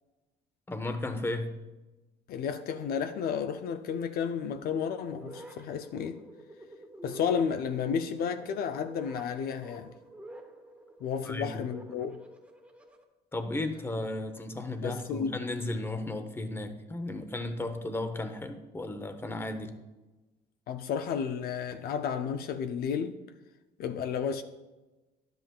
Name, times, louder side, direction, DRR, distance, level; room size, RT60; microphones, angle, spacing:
voice 1, 0.7-1.6 11.2-11.5 13.3-19.7, left 2 dB, 15° left, 0.7 m, -34 dB
voice 2, 2.3-6.2 7.0-9.9 11.0-12.2 14.8-15.4 20.7-23.2 23.8-24.4, left 7 dB, 65° left, 0.5 m, -32 dB
sound 1, 5.1-13.0, right 1 dB, 5° right, 1.0 m, -49 dB
11.0 x 7.8 x 2.3 m
cardioid pair, 110°, 17 cm